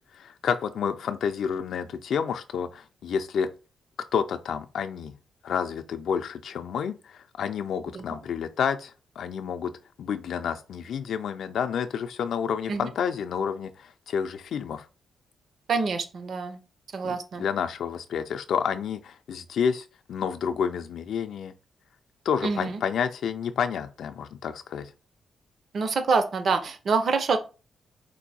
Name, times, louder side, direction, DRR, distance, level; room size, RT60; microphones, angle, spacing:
voice 1, 0.1-3.5 4.1-5.1 5.4-9.7 10.0-14.9 17.0-21.5 22.3-24.9, left 7 dB, 65° left, 0.3 m, -29 dB
voice 2, 15.7-16.6 16.9-17.5 22.4-22.8 25.7-27.4, right 4 dB, 45° right, 0.5 m, -26 dB
4.5 x 2.5 x 4.0 m
wide cardioid pair, 175°, 0 cm